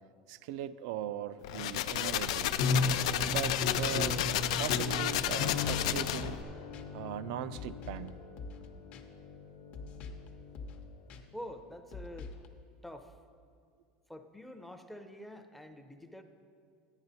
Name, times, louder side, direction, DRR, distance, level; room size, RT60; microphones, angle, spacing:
voice 1, 0.3-2.5 3.3-4.2 4.6-6.4 6.9-8.1, right 11 dB, 75° right, 13 dB, 0.3 m, -39 dB
sound 1, 1.4-6.4, left 12 dB, 90° left, 0.4 m, -32 dB
sound 2, 2.5-10.9, left 3 dB, 70° left, 0.8 m, -36 dB
sound 3, 4.6-4.7 5.6-5.9 6.2-6.5 6.7-6.9 7.5-8.1 8.4-8.7 8.9-9.0 9.7-10.3 10.5-10.8 11.1-11.2 11.9-12.5, left 4 dB, 45° left, 0.7 m, -45 dB
voice 2, 11.3-12.3 12.8-13.1 14.1-16.2, equal, 5° left, 7 dB, 0.5 m, -46 dB
10.5 x 9.5 x 4.1 m, 2.3 s
supercardioid pair, 145°, 3 cm